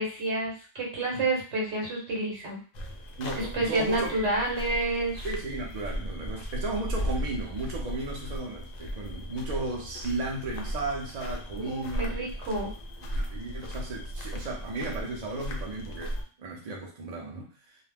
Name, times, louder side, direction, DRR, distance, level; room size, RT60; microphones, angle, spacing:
voice 1, 0.0-2.6 3.3-5.1 11.5-12.7, right 2 dB, 65° right, -2 dB, 1.1 m, -29 dB
sound 1, 2.7-16.2, equal, 60° left, 0.4 m, -36 dB
voice 2, 3.2-4.1 5.2-12.1 13.1-16.1 16.4-17.8, right 2 dB, 45° right, -2 dB, 0.5 m, -35 dB
sound 2, 4.0-5.9 6.4-6.9 7.2-7.3 8.0-8.1, right 4 dB, 90° right, 0.9 m, -39 dB
2.4 x 2.1 x 3.3 m, 0.40 s
omnidirectional pair, 1.3 m